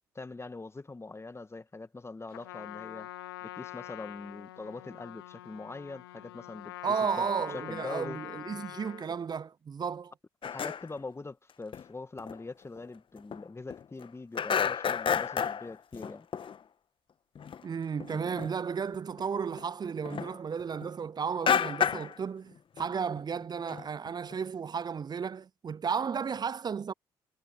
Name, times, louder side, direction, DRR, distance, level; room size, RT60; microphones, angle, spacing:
voice 1, 0.1-3.1 3.4-6.7 7.0-8.2 10.4-16.3, left 3 dB, 20° left, 1.8 m, -43 dB
Trumpet, 2.3-9.1, left 16 dB, 80° left, 0.5 m, -44 dB
voice 2, 6.8-10.1 17.6-26.9, right 6 dB, 35° right, 0.6 m, -33 dB
sound 1, 10.4-11.0 11.7-11.8 12.2-12.4 12.8-12.9 13.2-14.1 14.4-16.6 17.4-17.6 18.0-18.6 18.9-20.9 21.5-22.2 22.5-22.9 23.2-23.3 23.6-24.3, left 7 dB, 45° left, 1.4 m, -31 dB
figure-of-eight pair, 45°, 12 cm